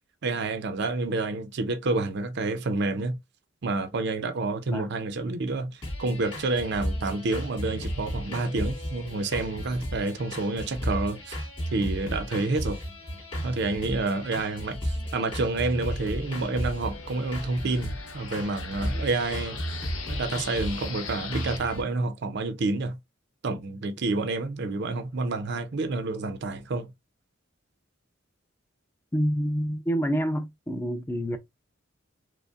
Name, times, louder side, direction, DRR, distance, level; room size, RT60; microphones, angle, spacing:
voice 1, 0.2-3.2 3.6-11.4 11.7-12.8 13.4-19.6 20.1-23.0 23.4-26.9, right 3 dB, 55° right, 0.5 m, -29 dB
sound 1, 5.8-21.8, equal, 25° left, 2.1 m, -34 dB
sound 2, 14.9-21.6, left 5 dB, 85° left, 0.9 m, -42 dB
voice 2, 29.1-31.4, equal, 10° left, 0.4 m, -27 dB
5.1 x 2.1 x 2.3 m
head